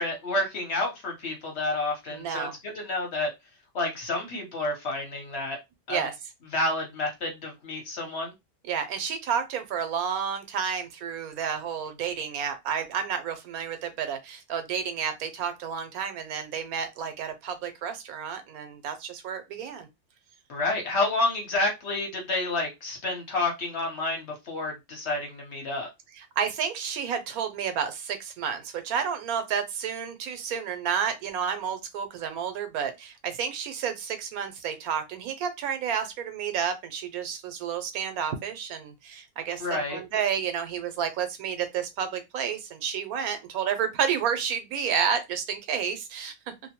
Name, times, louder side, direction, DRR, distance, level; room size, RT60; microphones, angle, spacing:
voice 1, 0.0-3.3 3.7-5.6 5.9-6.0 6.5-8.3 20.5-25.9 39.6-40.0, left 2 dB, 55° left, 1.0 m, -29 dB
voice 2, 2.1-2.6 5.9-6.1 8.7-19.9 26.2-46.3, right 7 dB, 85° right, 1.1 m, -30 dB
2.6 x 2.1 x 2.8 m
omnidirectional pair, 1.5 m